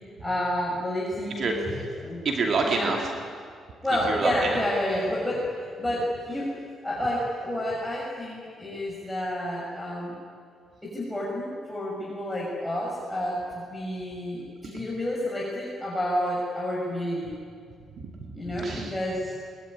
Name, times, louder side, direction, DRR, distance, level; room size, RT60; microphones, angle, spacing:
voice 1, 0.2-2.2 2.6-3.0 3.8-6.6 6.8-10.1 10.8-17.3 18.3-19.3, left 1 dB, 5° left, -6 dB, 6.4 m, -30 dB
voice 2, 2.2-3.1 4.0-4.6 14.6-14.7 18.0-18.9, right 4 dB, 55° right, 1 dB, 2.6 m, -28 dB
22.0 x 22.0 x 9.9 m, 2.2 s
cardioid pair, 90°, 0 cm